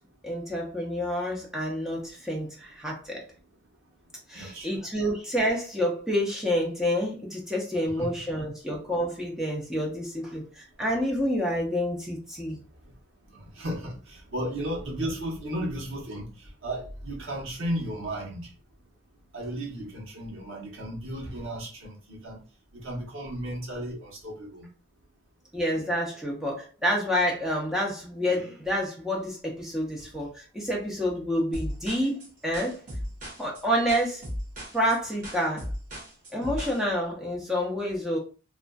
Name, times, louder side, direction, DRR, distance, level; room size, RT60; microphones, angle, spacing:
voice 1, 0.2-3.2 4.3-12.6 25.5-32.8 33.4-34.2 34.7-35.7 36.3-38.2, equal, 5° right, -2 dB, 0.5 m, -28 dB
voice 2, 4.3-4.8 8.0-8.1 13.3-16.3 16.6-18.5 19.3-22.4 22.8-24.7, right 1 dB, 85° right, -3 dB, 1.0 m, -34 dB
sound 1, 31.5-36.8, equal, 40° right, 0.9 m, -36 dB
2.4 x 2.3 x 2.2 m, 0.35 s
head